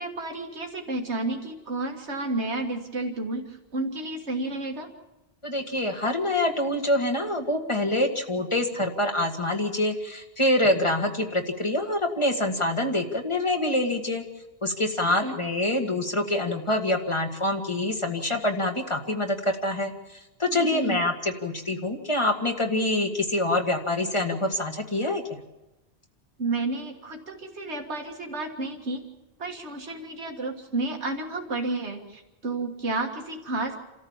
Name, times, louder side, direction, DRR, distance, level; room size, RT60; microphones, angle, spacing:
voice 1, 0.0-4.9 15.0-15.4 20.5-21.0 26.4-29.0 29.4-33.8, right 2 dB, 90° right, 2 dB, 2.1 m, -31 dB
voice 2, 5.4-14.2 14.6-19.9 20.4-25.4, left 1 dB, 25° left, 4 dB, 1.9 m, -26 dB
28.5 x 14.0 x 7.3 m, 1.0 s
omnidirectional pair, 1.1 m